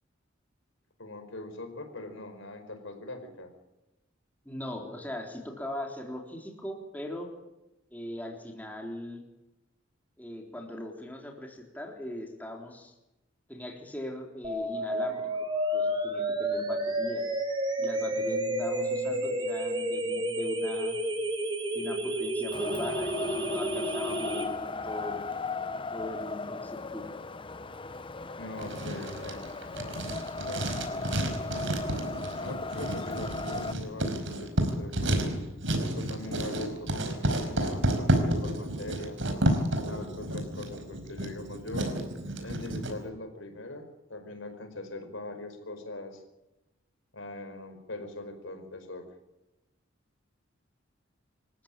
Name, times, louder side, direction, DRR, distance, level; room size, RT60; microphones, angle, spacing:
voice 1, 1.0-3.5 18.1-19.2 28.4-29.5 30.4-31.1 32.4-35.4 35.9-39.2 39.9-41.9 42.4-46.2 47.1-49.0, left 2 dB, 75° left, 6 dB, 4.9 m, -42 dB
voice 2, 4.5-7.3 7.9-9.2 10.2-12.9 13.5-15.3 15.7-17.2 17.8-21.0 21.7-25.2 25.9-27.0, left 1 dB, 10° left, 1 dB, 3.8 m, -40 dB
sound 1, 14.4-24.4, right 1 dB, 25° right, 4.1 m, -30 dB
Wind, 22.5-33.7, left 3 dB, 25° left, 0.8 m, -37 dB
Writing, 28.6-42.9, right 1 dB, 70° right, 5.0 m, -30 dB
27.5 x 15.0 x 9.0 m, 0.96 s
head